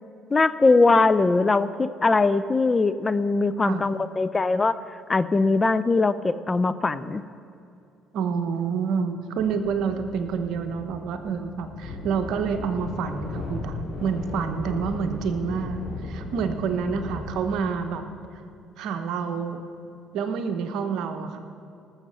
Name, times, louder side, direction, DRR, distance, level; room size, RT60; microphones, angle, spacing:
voice 1, 0.3-4.8 5.1-7.2, left 3 dB, 30° left, 15 dB, 0.5 m, -21 dB
voice 2, 8.1-18.1 18.8-19.6 20.1-21.4, right 6 dB, 70° right, 7 dB, 1.0 m, -28 dB
sound 1, 9.4-17.7, left 2 dB, 60° left, 3.8 m, -37 dB
18.5 x 7.3 x 5.6 m, 2.5 s
supercardioid pair, 65°, 0 cm